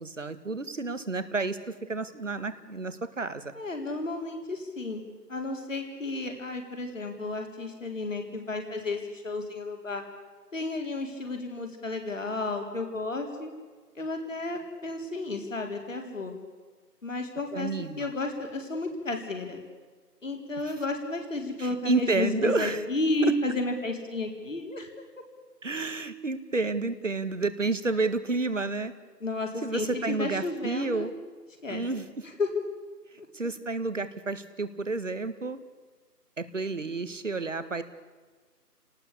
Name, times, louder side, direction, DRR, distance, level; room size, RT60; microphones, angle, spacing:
voice 1, 0.0-3.5 17.5-18.1 20.7-20.8 21.6-22.8 25.6-28.9 29.6-31.1 31.7-32.2 33.3-35.6 36.4-37.8, right 3 dB, 50° right, 12 dB, 1.8 m, -30 dB
voice 2, 3.5-5.0 5.3-10.0 10.5-13.5 14.0-16.3 17.0-17.7 18.0-19.6 20.2-24.9 29.2-31.1 31.6-31.8 32.4-32.5 33.2-33.3, left 2 dB, 50° left, 4 dB, 4.1 m, -32 dB
29.0 x 19.0 x 8.6 m, 1.4 s
figure-of-eight pair, 175°, 49 cm